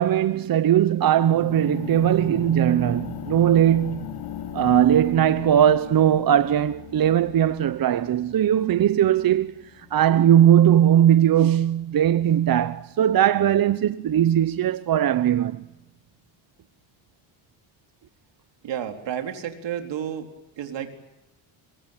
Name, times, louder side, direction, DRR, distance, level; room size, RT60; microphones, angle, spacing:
voice 1, 0.0-4.1 4.5-9.5 9.9-15.7, right 10 dB, 45° right, 1.0 m, -19 dB
sound 1, 1.1-11.1, left 7 dB, 85° left, 3.5 m, -38 dB
voice 2, 18.6-20.3 20.6-20.9, right 9 dB, 60° right, 4.2 m, -31 dB
26.0 x 23.5 x 9.1 m
cardioid pair, 100°, 48 cm